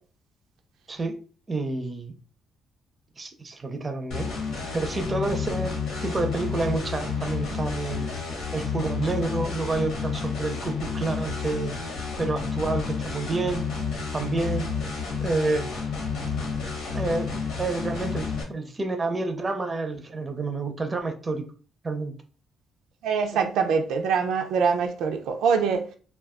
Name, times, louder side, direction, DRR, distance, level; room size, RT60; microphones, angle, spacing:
voice 1, 1.5-2.1 3.2-4.3 4.7-5.7 6.0-8.1 8.5-11.7 12.2-13.6 14.1-14.7 15.2-15.7 16.9-21.5 21.8-22.1, right 3 dB, 25° right, 0.6 m, -29 dB
sound 1, 4.1-18.4, left 5 dB, 80° left, 1.0 m, -30 dB
voice 2, 23.0-25.9, right 6 dB, 85° right, 0.4 m, -24 dB
2.3 x 2.2 x 3.5 m
cardioid pair, 90°, 0 cm